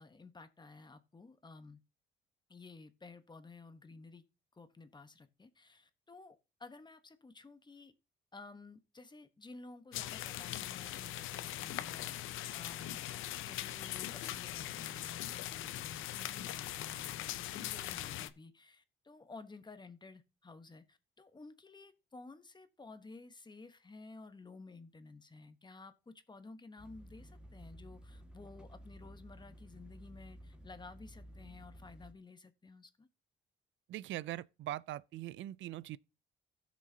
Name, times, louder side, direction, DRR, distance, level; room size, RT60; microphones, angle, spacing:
voice 1, 0.0-1.8 2.5-4.2 4.5-7.9 8.3-13.0 13.4-33.1, left 3 dB, 20° left, 1.1 m, -53 dB
sound 1, 9.9-18.3, left 13 dB, 85° left, 0.6 m, -41 dB
sound 2, 26.8-32.1, equal, 5° right, 1.7 m, -54 dB
voice 2, 33.9-36.0, right 14 dB, 70° right, 0.4 m, -41 dB
16.0 x 6.3 x 2.8 m
cardioid pair, 90°, 20 cm